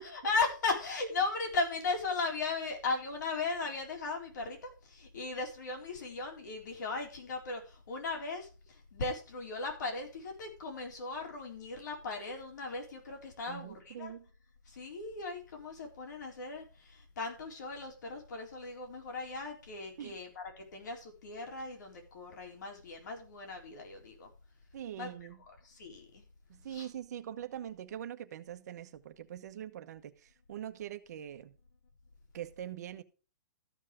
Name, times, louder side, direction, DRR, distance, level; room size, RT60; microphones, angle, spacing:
voice 1, 0.0-8.5 8.9-14.1 14.7-24.3 25.0-25.1 25.6-26.2 26.7-26.9, left 3 dB, 70° left, 4.1 m, -37 dB
voice 2, 13.5-14.3 20.0-20.2 24.7-25.4 26.5-31.5 32.3-33.0, right 10 dB, 60° right, 1.1 m, -43 dB
13.5 x 5.7 x 5.0 m
hypercardioid pair, 145°, 10 cm